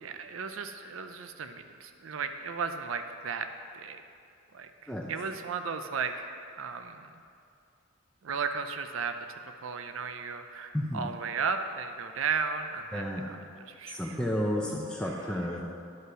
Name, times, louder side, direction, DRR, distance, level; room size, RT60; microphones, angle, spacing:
voice 1, 0.0-3.5 3.7-4.0 4.5-6.3 6.6-7.1 8.2-14.2, right 5 dB, 80° right, 8 dB, 0.5 m, -35 dB
voice 2, 10.7-11.1 12.9-13.2 13.9-15.6, equal, 5° left, -2 dB, 0.6 m, -31 dB
11.5 x 5.5 x 6.2 m, 2.5 s
head